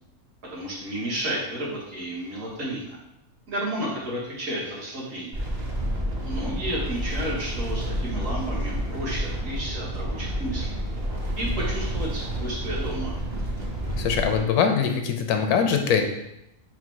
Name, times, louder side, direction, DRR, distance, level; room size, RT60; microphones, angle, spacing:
voice 1, 0.5-3.0 3.5-5.4 6.2-10.7 11.4-13.1, right 1 dB, 60° right, -6 dB, 1.6 m, -32 dB
sound 1, 5.3-14.4, right 1 dB, 35° right, 0.8 m, -29 dB
voice 2, 14.0-16.0, left 7 dB, 85° left, 5 dB, 1.1 m, -22 dB
4.6 x 2.2 x 4.5 m, 0.82 s
omnidirectional pair, 1.6 m